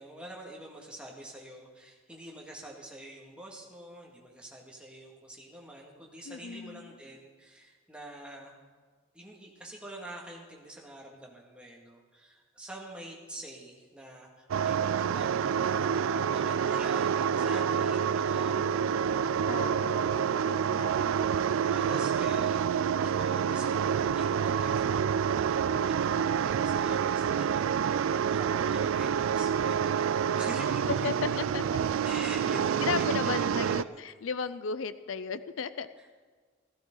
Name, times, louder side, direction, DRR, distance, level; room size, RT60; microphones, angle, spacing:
voice 1, 0.0-8.6 9.1-19.3 21.6-25.0 25.3-31.4 32.0-34.0 36.0-36.1, right 1 dB, 5° right, -2 dB, 2.0 m, -46 dB
voice 2, 6.3-6.8 19.5-20.9 30.9-31.1 31.5-31.6 32.9-35.9, left 6 dB, 80° left, 14 dB, 0.5 m, -35 dB
sound 1, 14.5-33.8, right 7 dB, 90° right, 0.3 m, -28 dB
15.0 x 15.0 x 3.9 m, 1.5 s
head